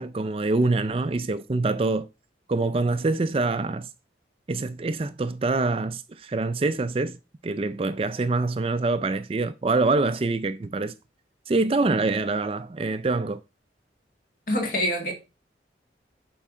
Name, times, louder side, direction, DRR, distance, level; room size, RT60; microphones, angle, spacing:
voice 1, 0.0-2.1 2.5-3.9 4.5-7.2 7.4-10.9 11.5-13.4, right 3 dB, 30° right, 0.4 m, -25 dB
voice 2, 14.5-15.1, equal, 50° left, 2.0 m, -25 dB
7.4 x 4.7 x 3.7 m
head